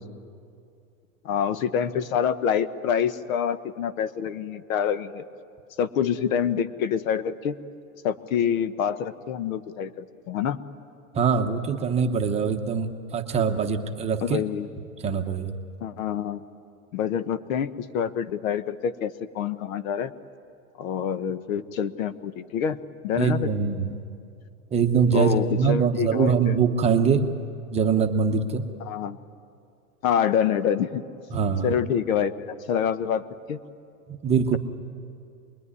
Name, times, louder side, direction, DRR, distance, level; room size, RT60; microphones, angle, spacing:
voice 1, 1.2-5.2 5.8-7.6 8.0-10.6 14.2-14.7 15.8-16.4 16.9-20.1 20.8-22.8 23.0-23.5 25.1-26.6 28.8-29.2 30.0-31.0 31.6-33.2 33.5-33.6, left 8 dB, 65° left, 13 dB, 1.3 m, -26 dB
voice 2, 11.1-14.4 15.0-15.5 23.2-24.0 24.7-27.3 27.7-28.6 31.3-31.7 34.1-34.6, right 6 dB, 15° right, 4 dB, 0.8 m, -23 dB
27.5 x 21.5 x 9.8 m, 2.4 s
supercardioid pair, 155°, 43 cm